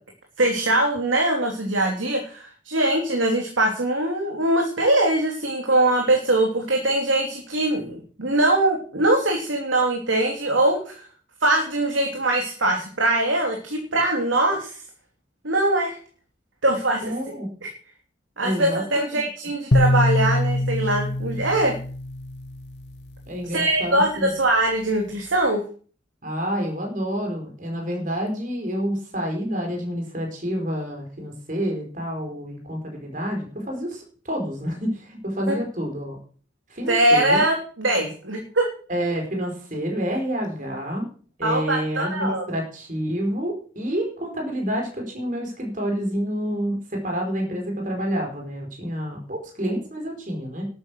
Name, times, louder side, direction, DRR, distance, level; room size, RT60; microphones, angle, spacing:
voice 1, 0.4-11.0 11.4-14.8 15.4-16.0 16.6-17.0 17.6-17.7 18.4-21.7 23.5-25.6 35.5-35.6 36.9-38.7 41.4-42.4, right 1 dB, 85° right, 1 dB, 3.1 m, -22 dB
voice 2, 17.0-17.5 18.4-19.2 23.3-24.3 26.2-36.2 36.7-37.4 38.9-41.1 41.4-50.7, equal, 40° right, 1 dB, 4.5 m, -28 dB
sound 1, 19.7-23.0, left 1 dB, 60° left, 1.0 m, -23 dB
12.5 x 9.9 x 6.1 m, 0.43 s
head